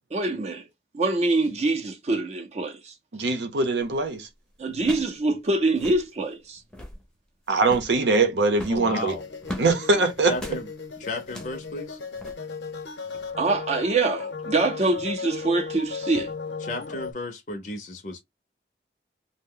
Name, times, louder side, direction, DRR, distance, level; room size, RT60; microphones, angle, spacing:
voice 1, 0.1-0.7 0.9-2.9 4.6-6.6 13.4-16.3, right 2 dB, 40° right, 0.5 m, -25 dB
voice 2, 3.1-4.3 7.5-9.1 9.6-10.3, right 3 dB, 85° right, 0.7 m, -22 dB
sound 1, 3.8-4.1 4.8-5.2 5.4-5.5 5.7-6.1 6.6-7.0 7.6-8.0 8.5-9.7 10.3-10.6 11.2-11.6 12.1-12.3, left 1 dB, 5° left, 0.6 m, -38 dB
voice 3, 8.7-9.2 10.3-10.7 11.0-12.0 16.6-18.2, left 2 dB, 45° left, 0.5 m, -33 dB
sound 2, 8.9-17.1, left 4 dB, 85° left, 0.7 m, -36 dB
2.7 x 2.1 x 3.6 m
head